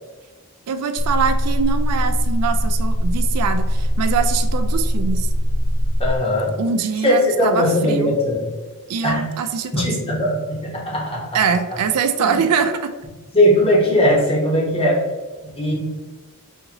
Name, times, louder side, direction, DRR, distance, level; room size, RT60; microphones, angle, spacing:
voice 1, 0.7-5.3 6.6-8.2 8.9-9.9 11.3-12.9, right 6 dB, 85° right, 8 dB, 0.3 m, -23 dB
sound 1, 1.0-6.2, equal, 80° left, 0.4 m, -20 dB
voice 2, 6.0-6.6 7.0-8.4 9.0-9.3 9.7-11.3 12.2-12.3 13.3-15.0 15.4-15.7, left 1 dB, 25° left, -3 dB, 1.1 m, -19 dB
5.7 x 2.7 x 2.9 m, 1.3 s
head